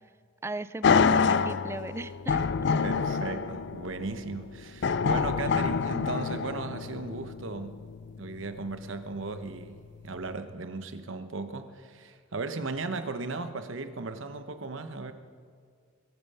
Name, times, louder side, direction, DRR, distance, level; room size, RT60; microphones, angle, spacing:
voice 1, 0.4-2.4 2.7-2.8, right 2 dB, 15° right, 15 dB, 0.3 m, -38 dB
sound 1, 0.8-8.9 9.4-9.5, left 5 dB, 55° left, 0.4 m, -27 dB
voice 2, 2.8-7.8 8.2-15.1, right 3 dB, 70° right, 9 dB, 0.9 m, -36 dB
21.5 x 9.1 x 5.5 m, 2.1 s
head